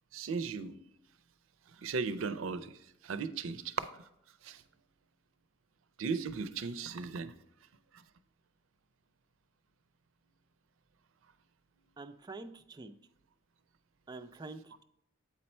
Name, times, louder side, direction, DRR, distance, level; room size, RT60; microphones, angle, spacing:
voice 1, 0.1-0.8 1.7-4.1 4.4-4.6 6.0-7.3 7.9-8.0, right 5 dB, 85° right, 12 dB, 0.5 m, -37 dB
voice 2, 12.0-13.0 14.1-14.8, right 3 dB, 20° right, 9 dB, 0.3 m, -46 dB
8.5 x 4.3 x 4.2 m, 0.77 s
head